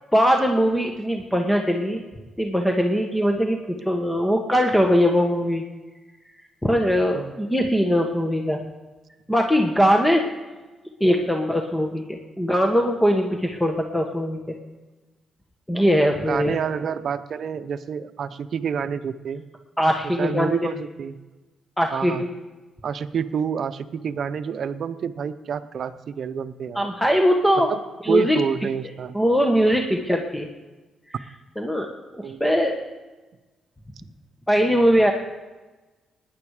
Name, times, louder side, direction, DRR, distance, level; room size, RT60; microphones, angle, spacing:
voice 1, 0.1-2.0 2.4-3.6 3.8-5.6 6.6-8.6 9.3-10.2 11.0-14.4 15.7-16.6 19.8-20.7 21.8-22.3 26.7-27.7 28.0-28.4 29.1-30.5 31.6-31.9 32.1-32.8 34.5-35.1, equal, 10° left, 2 dB, 1.5 m, -21 dB
voice 2, 16.2-19.4 20.0-21.2 21.9-22.2 22.8-26.9 27.7-27.8 28.1-29.2 32.2-32.4, right 7 dB, 65° right, 11 dB, 0.8 m, -28 dB
17.5 x 10.5 x 5.0 m, 1.2 s
supercardioid pair, 65°, 0 cm